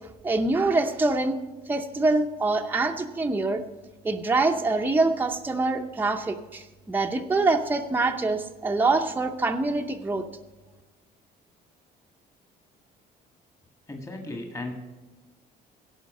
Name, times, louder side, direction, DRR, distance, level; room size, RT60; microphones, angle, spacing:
voice 1, 0.2-1.4 1.7-3.6 4.0-10.2, right 3 dB, 10° right, 3 dB, 0.7 m, -25 dB
voice 2, 13.9-14.8, left 2 dB, 20° left, 2 dB, 1.7 m, -35 dB
16.5 x 5.7 x 5.4 m, 1.2 s
cardioid pair, 110°, 17 cm